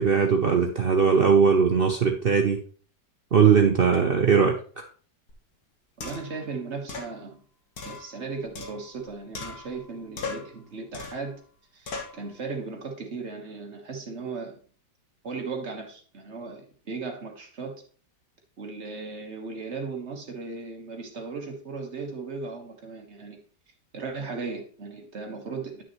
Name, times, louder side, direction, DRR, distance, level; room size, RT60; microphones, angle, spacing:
voice 1, 0.0-2.6 3.3-4.8, right 6 dB, 70° right, 3 dB, 0.5 m, -20 dB
sound 1, 5.3-5.4 6.0-6.4 6.9-7.1 7.8-9.0 9.3-9.9 10.2-10.6 10.9-11.3 11.9-12.2, left 4 dB, 60° left, 1.7 m, -38 dB
voice 2, 6.0-7.4 7.8-11.4 11.7-14.6 15.2-17.8 18.6-23.4 23.9-25.8, right 4 dB, 40° right, 2 dB, 1.5 m, -36 dB
10.0 x 6.1 x 3.0 m, 0.43 s
omnidirectional pair, 1.9 m